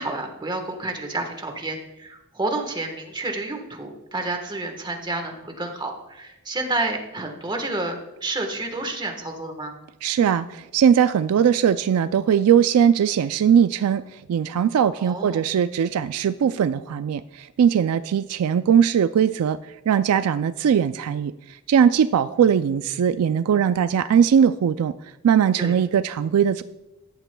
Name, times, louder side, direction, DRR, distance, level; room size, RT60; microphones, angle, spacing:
voice 1, 0.0-9.7 15.0-15.4 25.6-25.7, right 2 dB, 20° right, 4 dB, 1.3 m, -30 dB
voice 2, 10.0-19.6 19.9-24.9 25.2-26.6, right 8 dB, 70° right, 13 dB, 0.3 m, -20 dB
14.5 x 11.0 x 2.2 m, 1.0 s
head